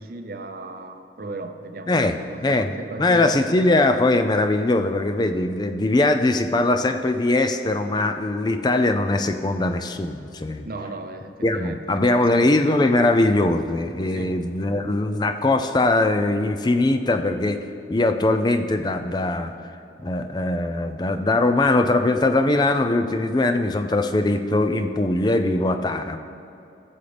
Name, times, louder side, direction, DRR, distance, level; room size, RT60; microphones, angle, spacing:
voice 1, 0.0-3.6 10.6-12.5 14.1-14.4, right 2 dB, 50° right, 6 dB, 0.6 m, -36 dB
voice 2, 2.4-2.7 3.0-10.7 11.4-17.6 17.9-19.5 20.0-26.2, left 2 dB, 25° left, 8 dB, 0.4 m, -21 dB
14.0 x 7.2 x 3.4 m, 2.7 s
head